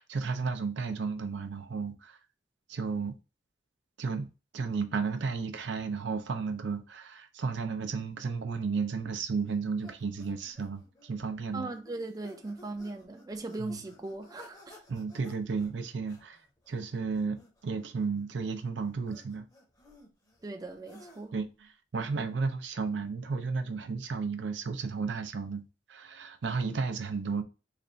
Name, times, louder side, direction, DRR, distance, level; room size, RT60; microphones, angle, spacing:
voice 1, 0.0-2.2 2.7-3.2 4.0-4.3 4.5-11.7 13.6-13.7 14.9-16.4 16.7-19.5 21.3-21.4 21.9-27.4, right 4 dB, 80° right, 0.5 m, -33 dB
sound 1, 9.4-21.5, left 1 dB, 20° left, 0.8 m, -56 dB
voice 2, 11.5-14.8 20.4-21.4, right 2 dB, 20° right, 0.4 m, -39 dB
3.3 x 2.5 x 3.8 m
head